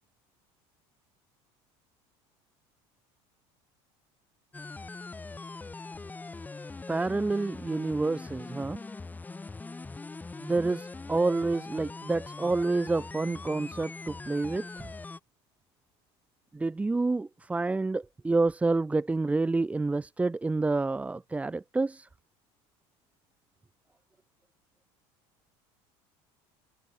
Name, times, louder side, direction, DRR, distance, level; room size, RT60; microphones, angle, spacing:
sound 1, 4.5-15.2, left 3 dB, 15° left, 1.9 m, -42 dB
voice 1, 6.9-8.8 10.4-14.9 16.5-22.1, right 3 dB, 10° right, 0.7 m, -28 dB
open air
supercardioid pair, 125°, 13 cm